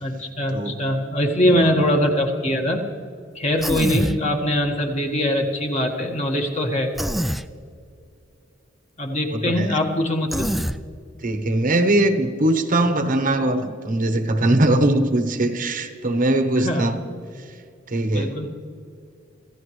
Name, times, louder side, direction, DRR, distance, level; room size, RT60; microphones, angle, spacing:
voice 1, 0.0-2.8 3.4-6.9 9.0-10.5 16.6-16.9 18.1-18.5, left 1 dB, 35° left, 2 dB, 1.6 m, -22 dB
Human voice, 3.6-4.2 7.0-7.4 10.3-10.8, equal, ahead, 0.3 m, -24 dB
voice 2, 9.3-9.8 11.2-17.0 17.9-18.3, right 1 dB, 40° right, 7 dB, 1.0 m, -21 dB
25.5 x 15.0 x 3.2 m, 2.3 s
head